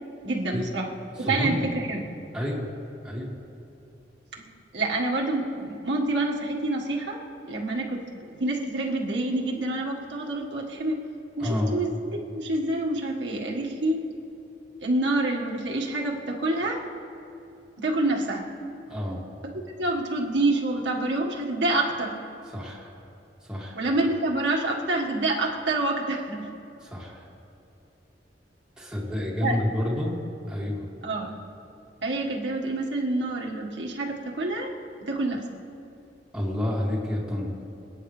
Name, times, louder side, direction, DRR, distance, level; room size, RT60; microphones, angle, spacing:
voice 1, 0.2-0.9 1.2-2.0 4.4-11.0 11.4-11.9 12.3-14.0 14.8-16.8 17.8-18.5 19.8-22.2 23.7-26.5 29.4-29.6 31.0-31.4 32.0-34.7 35.0-35.4, right 2 dB, 80° right, -1 dB, 1.7 m, -27 dB
voice 2, 1.2-1.7 2.3-2.7 3.0-3.4 11.4-11.7 18.9-19.2 22.5-22.9 23.4-23.8 26.8-27.3 28.8-30.2 30.5-30.9 36.3-37.7, left 1 dB, 5° right, -5 dB, 2.3 m, -29 dB
26.5 x 9.6 x 3.3 m, 2.8 s
head